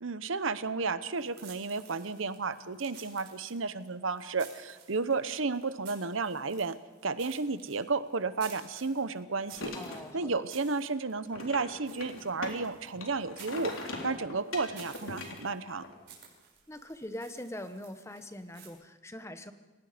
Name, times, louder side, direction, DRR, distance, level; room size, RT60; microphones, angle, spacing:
voice 1, 0.0-6.8 7.0-9.7 10.1-13.7 14.0-15.8, right 4 dB, 70° right, 13 dB, 0.9 m, -32 dB
sound 1, 1.1-18.7, right 7 dB, 55° right, 6.5 m, -55 dB
sound 2, 9.6-10.1 11.3-12.7 13.0-15.9, left 2 dB, 75° left, 3.7 m, -41 dB
voice 2, 9.7-10.5 16.7-19.5, left 1 dB, 15° left, 9 dB, 1.0 m, -42 dB
29.0 x 17.5 x 5.1 m, 1.2 s
head